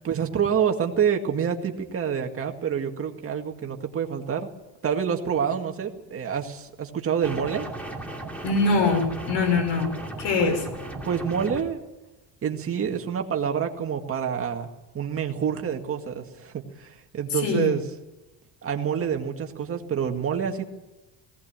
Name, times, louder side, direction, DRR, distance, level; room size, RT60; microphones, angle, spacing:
voice 1, 0.0-4.5 4.8-7.7 10.4-10.6 11.0-11.8 12.4-14.7 14.9-17.8 18.6-20.7, right 7 dB, 30° right, 3 dB, 2.1 m, -27 dB
sound 1, 7.2-11.6, right 1 dB, 5° left, 2.8 m, -36 dB
voice 2, 8.4-9.9 10.2-10.6 17.3-17.7, left 4 dB, 75° left, 6 dB, 5.6 m, -23 dB
19.0 x 17.5 x 8.9 m, 1.1 s
cardioid pair, 170°, 42 cm